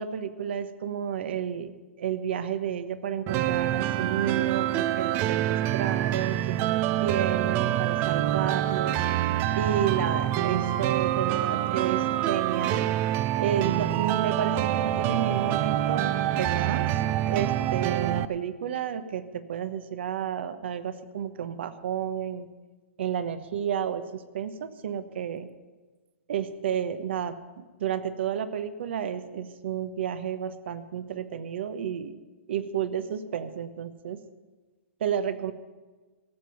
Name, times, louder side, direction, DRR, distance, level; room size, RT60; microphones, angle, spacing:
voice 1, 0.0-9.0 9.5-12.9 13.4-17.0 17.3-22.5 23.0-25.5 26.3-32.2 32.5-34.2 35.0-35.5, right 8 dB, 60° right, 12 dB, 1.1 m, -31 dB
sound 1, 3.3-18.2, right 13 dB, 30° right, 0.5 m, -26 dB
17.5 x 7.7 x 6.9 m, 1.3 s
hypercardioid pair, 130°, 7 cm